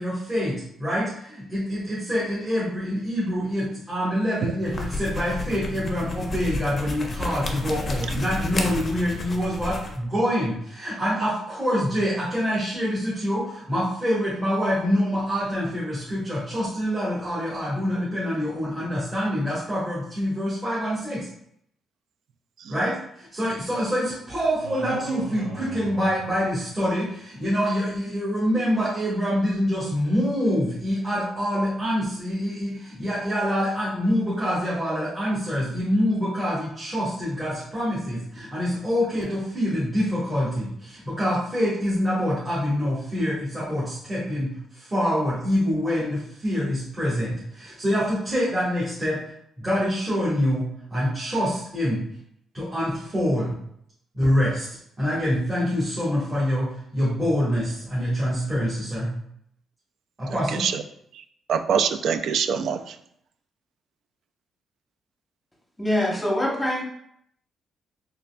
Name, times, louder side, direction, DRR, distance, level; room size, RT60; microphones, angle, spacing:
voice 1, 0.0-21.3 22.7-44.5 44.8-49.2 49.6-50.6 50.9-52.0 52.5-53.5 54.1-54.7 55.0-59.1 60.2-60.6, equal, 20° right, -9 dB, 1.3 m, -25 dB
voice 2, 4.4-4.7 22.7-22.8 60.5-60.8 61.5-62.9, right 7 dB, 65° right, 9 dB, 0.3 m, -25 dB
sound 1, 4.6-10.0, left 2 dB, 30° left, 0.5 m, -31 dB
sound 2, 24.6-27.1, right 2 dB, 85° right, 0.8 m, -39 dB
voice 3, 65.8-66.8, left 1 dB, 10° left, -1 dB, 0.9 m, -24 dB
3.9 x 3.2 x 2.2 m, 0.70 s
cardioid pair, 130°, 0 cm